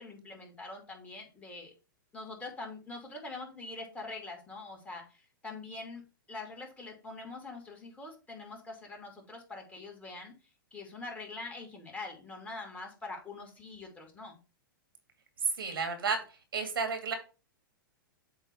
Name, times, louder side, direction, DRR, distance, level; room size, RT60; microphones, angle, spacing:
voice 1, 0.0-1.7 2.1-10.3 10.7-14.4, left 3 dB, 15° left, 0 dB, 2.5 m, -44 dB
voice 2, 15.6-16.2 16.5-17.1, right 5 dB, 85° right, 5 dB, 2.4 m, -32 dB
8.0 x 3.1 x 5.8 m, 0.32 s
hypercardioid pair, 120°, 12 cm